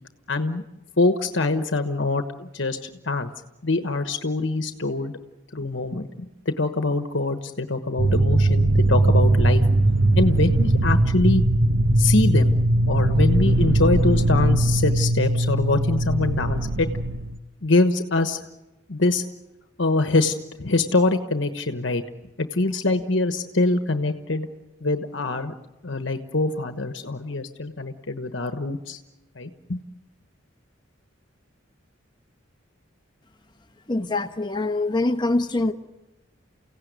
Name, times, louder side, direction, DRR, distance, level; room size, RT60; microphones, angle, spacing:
voice 1, 0.3-0.6 1.0-3.3 3.6-5.1 5.5-9.6 10.2-11.4 12.0-12.6 12.9-16.9 17.6-18.4 18.9-19.2 19.8-22.0 22.4-24.5 24.8-25.5 25.8-29.0 29.4-29.8, left 2 dB, 70° left, 8 dB, 1.2 m, -24 dB
sound 1, 8.0-17.4, right 1 dB, 90° right, 1.2 m, -20 dB
voice 2, 33.9-35.7, left 2 dB, 20° left, 8 dB, 1.1 m, -24 dB
30.0 x 16.5 x 9.4 m, 1.0 s
head